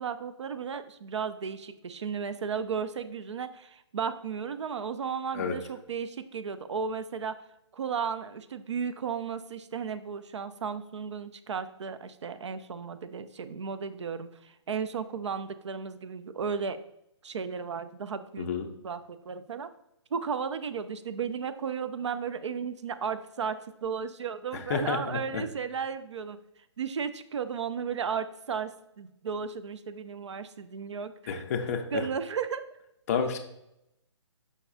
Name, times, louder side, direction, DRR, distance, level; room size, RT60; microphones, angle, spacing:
voice 1, 0.0-7.4 7.7-16.8 17.2-18.5 18.8-19.7 20.1-26.4 26.8-31.4 31.9-32.6, right 6 dB, 70° right, 12 dB, 0.4 m, -34 dB
voice 2, 24.5-25.4 31.3-32.1 33.1-33.4, left 6 dB, 30° left, 4 dB, 0.4 m, -30 dB
5.2 x 2.3 x 3.8 m, 0.81 s
figure-of-eight pair, 140°, 15 cm